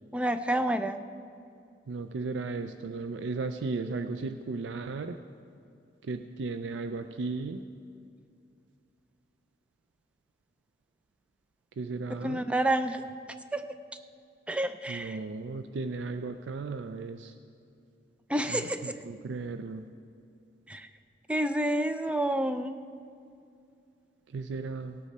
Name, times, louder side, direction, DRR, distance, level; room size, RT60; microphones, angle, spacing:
voice 1, 0.1-1.0 12.2-13.1 13.5-13.6 14.5-15.2 18.3-19.0 20.7-20.9 21.3-22.7, right 1 dB, 5° right, 10 dB, 0.4 m, -29 dB
voice 2, 1.9-5.2 6.0-7.6 11.8-12.4 14.9-17.3 18.5-19.9 24.3-25.0, right 3 dB, 70° right, 8 dB, 0.4 m, -35 dB
17.5 x 8.3 x 4.2 m, 2.5 s
head